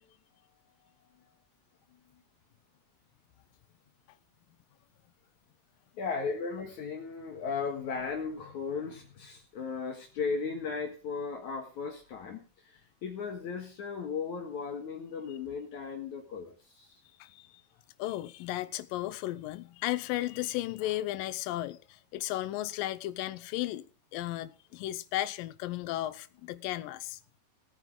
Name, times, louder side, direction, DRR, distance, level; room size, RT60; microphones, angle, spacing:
voice 1, 1.9-2.2 6.0-17.0 20.8-20.9, left 5 dB, 60° left, 2.7 m, -36 dB
voice 2, 17.2-17.6 18.0-23.8 24.1-27.2, left 15 dB, 75° left, 2.3 m, -35 dB
19.0 x 9.4 x 3.8 m
omnidirectional pair, 4.3 m